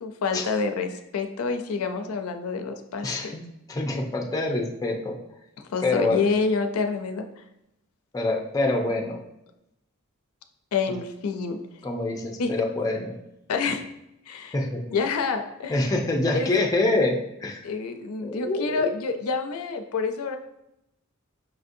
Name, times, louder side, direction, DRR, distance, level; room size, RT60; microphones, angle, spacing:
voice 1, 0.0-3.3 5.7-7.3 10.7-11.6 12.4-12.5 13.5-13.8 14.3-14.5 14.9-15.9 16.3-16.5 17.6-20.4, left 4 dB, 85° left, 6 dB, 0.4 m, -27 dB
voice 2, 3.0-3.4 3.7-5.2 5.8-6.2 8.1-9.2 11.8-13.1 14.5-14.8 15.7-17.6 18.2-18.9, left 2 dB, 15° left, 1 dB, 0.4 m, -26 dB
5.6 x 2.6 x 2.5 m, 0.84 s
head